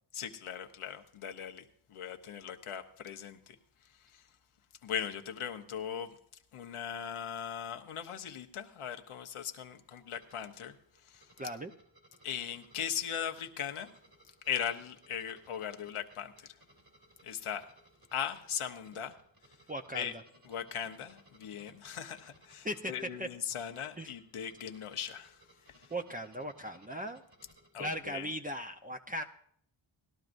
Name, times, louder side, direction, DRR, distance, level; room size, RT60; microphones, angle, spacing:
voice 1, 0.1-3.6 3.9-4.3 4.8-6.1 6.5-10.8 11.0-11.3 12.2-13.9 14.5-16.5 17.2-17.7 18.1-19.2 19.9-20.1 20.4-25.9 27.7-28.3, left 8 dB, 85° left, 6 dB, 1.0 m, -39 dB
sound 1, 10.1-27.7, right 1 dB, 45° right, 3.4 m, -63 dB
voice 2, 11.4-11.7 19.7-20.1 22.6-23.3 24.0-24.1 25.9-27.2 27.8-29.2, equal, 15° right, 4 dB, 0.7 m, -38 dB
19.0 x 12.0 x 2.6 m, 0.65 s
cardioid pair, 55°, 49 cm